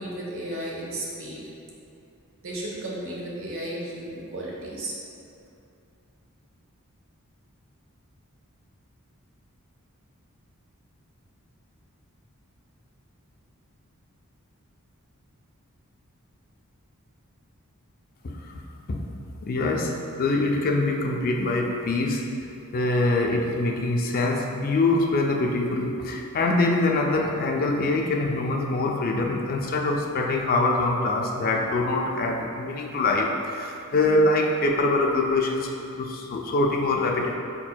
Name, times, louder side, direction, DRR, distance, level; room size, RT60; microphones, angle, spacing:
voice 1, 0.0-1.5 2.4-5.0, right 1 dB, 60° right, -4 dB, 0.9 m, -34 dB
voice 2, 18.2-18.6 18.9-19.0 19.4-19.9 20.2-22.2 22.7-35.7 36.0-37.4, left 2 dB, 40° left, 1 dB, 0.4 m, -24 dB
5.2 x 4.3 x 2.2 m, 2.6 s
head